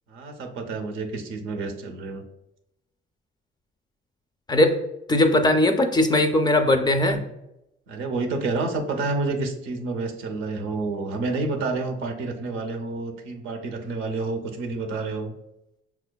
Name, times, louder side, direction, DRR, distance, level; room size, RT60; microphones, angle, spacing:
voice 1, 0.1-2.2 7.9-15.3, right 3 dB, 85° right, 4 dB, 0.6 m, -29 dB
voice 2, 5.1-7.2, left 1 dB, 20° left, 6 dB, 0.4 m, -19 dB
5.4 x 2.3 x 2.2 m, 0.86 s
cardioid pair, 90°, 20 cm